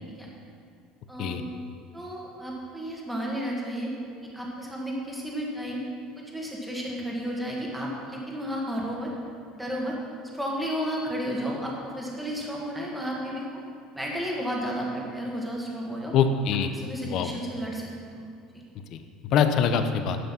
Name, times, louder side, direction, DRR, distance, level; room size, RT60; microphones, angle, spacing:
voice 1, 1.1-1.4 1.9-3.9 4.3-5.8 6.1-9.1 9.5-10.0 10.3-13.6 13.9-16.1 16.7-18.2 18.5-18.6, equal, 5° right, -3 dB, 1.6 m, -32 dB
voice 2, 16.1-16.7 17.1-17.3 18.9-20.2, left 7 dB, 40° left, 8 dB, 0.7 m, -24 dB
11.0 x 8.0 x 5.7 m, 2.4 s
cardioid pair, 175°, 0 cm